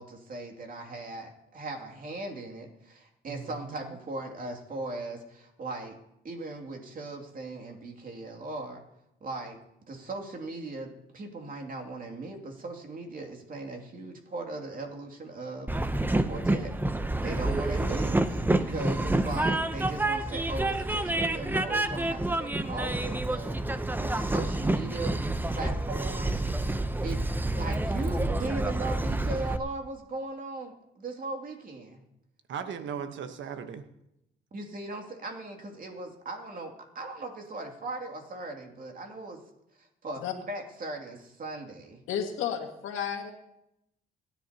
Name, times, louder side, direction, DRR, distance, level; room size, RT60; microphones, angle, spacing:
voice 1, 0.0-6.0 6.2-8.8 9.2-9.6 9.9-16.7 17.2-26.4 27.0-27.2 27.5-32.0 34.5-39.4 39.8-42.0, right 2 dB, 45° right, 3 dB, 2.6 m, -38 dB
voice 2, 3.3-3.9 32.5-33.8, right 7 dB, 70° right, 8 dB, 1.2 m, -38 dB
Train, 15.7-29.6, right 2 dB, 10° right, 0.7 m, -28 dB
voice 3, 42.1-43.3, left 8 dB, 90° left, 3 dB, 1.9 m, -32 dB
25.5 x 10.5 x 2.9 m, 0.84 s
cardioid pair, 90°, 20 cm